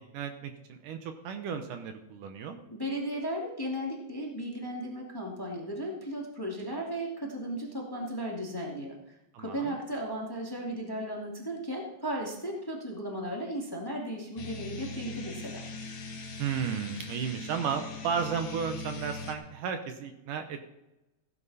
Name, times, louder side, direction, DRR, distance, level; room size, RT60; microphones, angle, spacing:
voice 1, 0.1-2.6 9.3-9.7 16.4-20.6, right 7 dB, 70° right, 6 dB, 2.4 m, -34 dB
voice 2, 2.7-15.6, equal, 10° left, -2 dB, 1.8 m, -35 dB
sound 1, 14.4-19.3, left 3 dB, 50° left, 1.9 m, -41 dB
16.0 x 10.5 x 4.2 m, 0.93 s
omnidirectional pair, 4.0 m